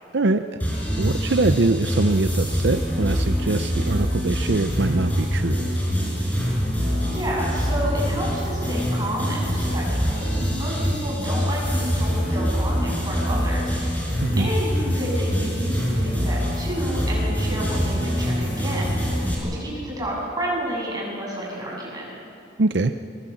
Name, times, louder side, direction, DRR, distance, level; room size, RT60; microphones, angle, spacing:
sound 1, 0.6-19.3, equal, 10° left, 5.6 m, -24 dB
voice 1, 1.0-5.7 14.2-14.5 22.6-22.9, right 2 dB, 70° right, 8 dB, 0.7 m, -23 dB
voice 2, 7.0-22.1, equal, 20° right, -4 dB, 8.0 m, -30 dB
24.5 x 24.0 x 7.2 m, 2.6 s
head